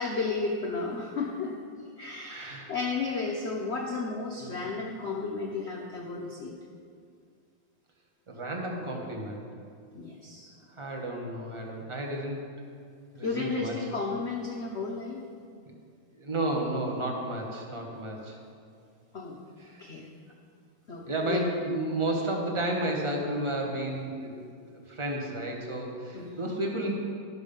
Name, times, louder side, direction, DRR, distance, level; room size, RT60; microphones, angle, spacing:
voice 1, 0.0-6.6 9.9-10.5 13.2-15.3 19.1-19.4 19.8-20.1 20.9-21.4 26.1-26.4, left 4 dB, 80° left, -1 dB, 0.6 m, -33 dB
voice 2, 2.3-2.7 4.4-4.6 8.3-9.5 10.8-12.4 13.1-13.7 16.1-18.4 19.6-19.8 21.1-24.3 24.7-26.9, right 1 dB, 30° right, 1 dB, 0.6 m, -32 dB
12.0 x 6.3 x 5.2 m, 2.3 s
omnidirectional pair, 2.3 m